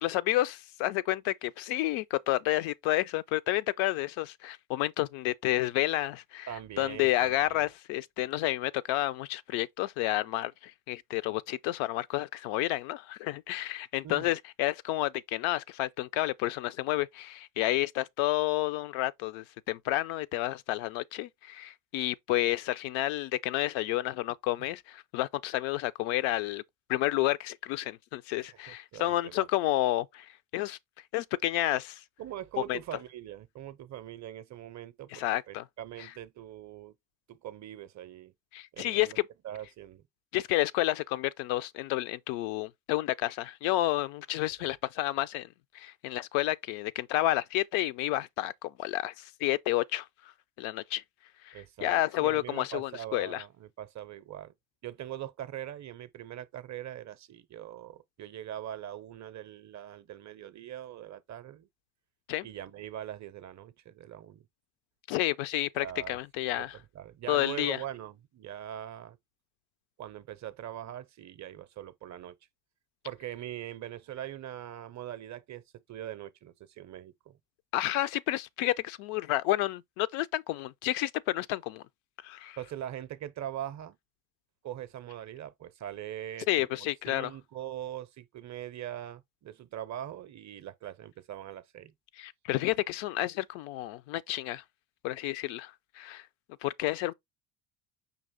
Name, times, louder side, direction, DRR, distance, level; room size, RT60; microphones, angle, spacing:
voice 1, 0.0-6.5 6.8-26.6 26.9-30.8 31.1-32.0 32.6-32.8 35.1-35.6 36.0-36.1 38.5-39.2 40.3-45.5 45.7-50.1 50.6-51.0 51.4-53.4 62.3-62.5 65.1-66.7 67.3-67.8 77.7-81.8 82.2-82.6 86.5-87.3 92.2-94.6 95.0-96.3 96.6-97.1, left 16 dB, 70° left, 0.5 m, -30 dB
voice 2, 6.5-7.7 14.0-14.3 28.7-29.5 32.2-36.9 37.3-38.3 38.7-39.2 39.4-40.0 44.6-44.7 51.5-54.5 54.8-61.7 62.4-64.5 65.7-66.2 66.6-69.2 70.0-72.3 73.0-75.6 75.9-77.4 82.6-84.0 84.6-91.9, right 11 dB, 35° right, 0.5 m, -42 dB
5.3 x 2.5 x 3.5 m
hypercardioid pair, 70°, 50 cm